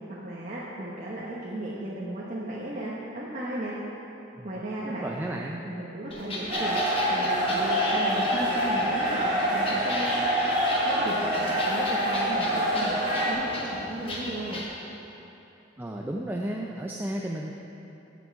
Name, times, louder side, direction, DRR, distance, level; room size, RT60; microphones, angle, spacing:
voice 1, 0.1-3.8 4.4-5.1 5.6-6.8 7.1-10.2 10.8-14.6, right 1 dB, 45° right, -7 dB, 1.1 m, -35 dB
voice 2, 5.0-5.6 15.8-17.5, right 1 dB, 10° right, -1 dB, 0.4 m, -33 dB
sound 1, 6.1-14.7, left 1 dB, 30° left, 1.3 m, -36 dB
sound 2, 6.5-13.3, equal, 25° right, 2.3 m, -26 dB
14.5 x 6.2 x 4.6 m, 2.9 s
head